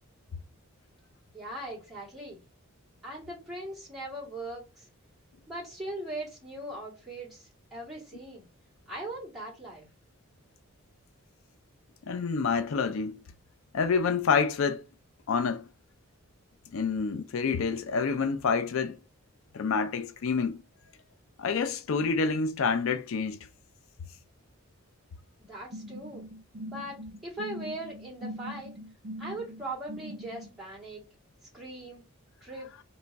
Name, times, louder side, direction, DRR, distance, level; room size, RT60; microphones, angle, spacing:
voice 1, 1.3-2.4 3.0-4.9 5.5-8.5 8.9-9.9 25.4-26.3 26.7-28.7 29.2-31.0 31.5-32.0 32.4-32.7, right 1 dB, ahead, 2.1 m, -40 dB
voice 2, 12.1-13.2 13.7-14.8 15.3-15.6 16.7-19.0 19.5-20.6 21.4-23.4, left 5 dB, 70° left, 0.4 m, -27 dB
sound 1, 25.7-30.5, equal, 60° right, 0.7 m, -42 dB
3.3 x 3.0 x 4.0 m
head